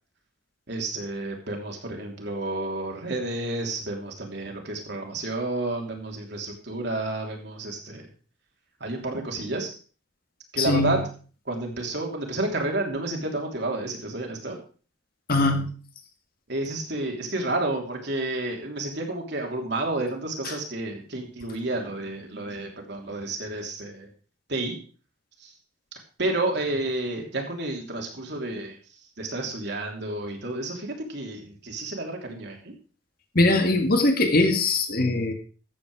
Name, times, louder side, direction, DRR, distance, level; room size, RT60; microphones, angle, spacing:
voice 1, 0.7-8.1 8.8-9.7 10.5-11.0 11.4-14.6 16.5-24.1 24.5-24.8 25.4-25.5 26.2-32.7, right 2 dB, 60° right, 1 dB, 3.2 m, -30 dB
voice 2, 10.6-11.0 15.3-15.7 33.4-35.3, left 2 dB, 50° left, 5 dB, 2.1 m, -21 dB
14.0 x 8.7 x 4.9 m, 0.38 s
head